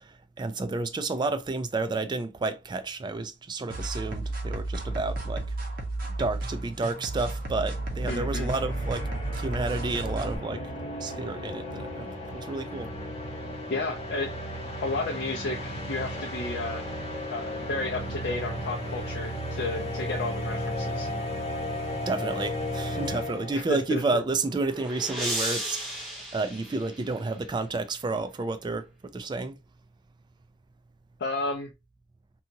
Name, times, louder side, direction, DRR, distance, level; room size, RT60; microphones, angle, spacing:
voice 1, 0.4-5.5 6.2-9.1 9.4-10.6 11.0-12.9 22.1-28.9 29.1-29.6, right 3 dB, 25° right, 0.3 m, -31 dB
sound 1, 3.7-10.4, right 2 dB, 50° right, 0.7 m, -33 dB
sound 2, 6.1-6.2 6.4-23.8, left 1 dB, 35° left, 1.0 m, -35 dB
voice 2, 8.0-8.5 13.7-14.3 14.8-16.9 17.3-21.1 23.5-24.2 31.2-31.7, left 2 dB, 60° left, 0.5 m, -32 dB
sound 3, 24.2-27.5, right 1 dB, ahead, 1.1 m, -35 dB
2.8 x 2.3 x 2.7 m
head